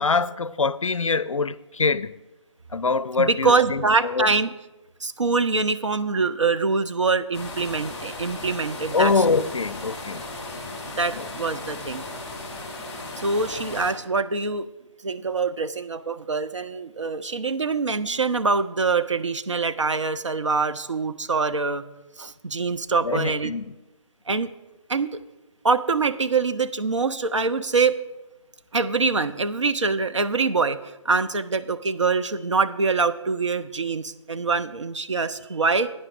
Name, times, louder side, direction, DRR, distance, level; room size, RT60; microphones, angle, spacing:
voice 1, 0.0-2.1 2.7-4.3 8.9-10.2 11.2-11.3 23.0-23.8, left 4 dB, 85° left, 0.4 m, -24 dB
voice 2, 3.2-4.5 5.0-9.2 10.9-12.0 13.2-14.7 15.0-21.8 22.2-23.5 24.3-24.5 24.9-25.2 25.6-28.0 28.7-30.8 31.0-35.9, right 4 dB, 70° right, 0.7 m, -24 dB
sound 1, 7.3-13.9, left 2 dB, 15° left, 2.1 m, -36 dB
15.5 x 9.7 x 2.5 m
figure-of-eight pair, 150°, 16 cm